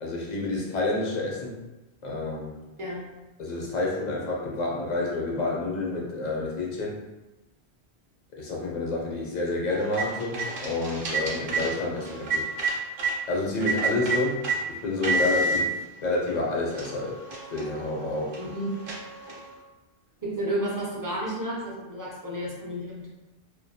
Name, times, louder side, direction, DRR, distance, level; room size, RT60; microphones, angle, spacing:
voice 1, 0.0-1.6 2.0-2.6 3.4-7.0 8.3-12.5 13.3-17.2 17.5-18.4, left 2 dB, 50° left, -2 dB, 0.6 m, -29 dB
sound 1, 9.7-13.2 13.6-14.6 15.0-15.6 16.3-16.4 16.7-19.5, right 3 dB, 60° right, 0.7 m, -30 dB
voice 2, 18.4-18.7 20.2-23.1, right 1 dB, 30° right, -5 dB, 0.3 m, -31 dB
2.3 x 2.2 x 2.6 m, 1.1 s
omnidirectional pair, 1.1 m